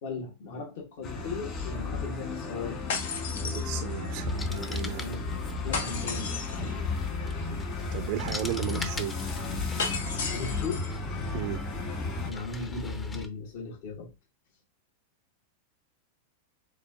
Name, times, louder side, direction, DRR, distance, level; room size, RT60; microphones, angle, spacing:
voice 1, 0.0-2.8 5.0-5.2 5.6-6.8 10.3-11.0 12.2-14.1, left 4 dB, 60° left, 1.4 m, -37 dB
sound 1, 1.0-12.3, left 3 dB, 35° left, 1.8 m, -33 dB
sound 2, 2.9-4.2 5.7-6.7 9.8-11.0, left 4 dB, 80° left, 1.1 m, -34 dB
voice 2, 3.4-5.1 7.9-9.1 11.3-11.6, right 12 dB, 60° right, 0.5 m, -35 dB
sound 3, 4.1-13.3, left 2 dB, 15° left, 0.6 m, -42 dB
6.9 x 2.4 x 2.7 m
hypercardioid pair, 120°, 0 cm